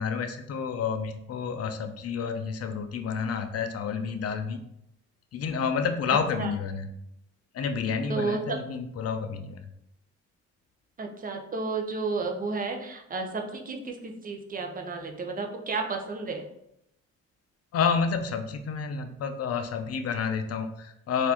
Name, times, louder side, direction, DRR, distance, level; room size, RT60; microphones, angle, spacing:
voice 1, 0.0-4.6 5.3-6.9 7.5-9.6 17.7-21.3, left 6 dB, 55° left, 7 dB, 0.5 m, -29 dB
voice 2, 8.1-8.4 11.0-16.4, right 4 dB, 30° right, 3 dB, 0.6 m, -32 dB
4.0 x 2.6 x 2.8 m, 0.79 s
cardioid pair, 90°, 30 cm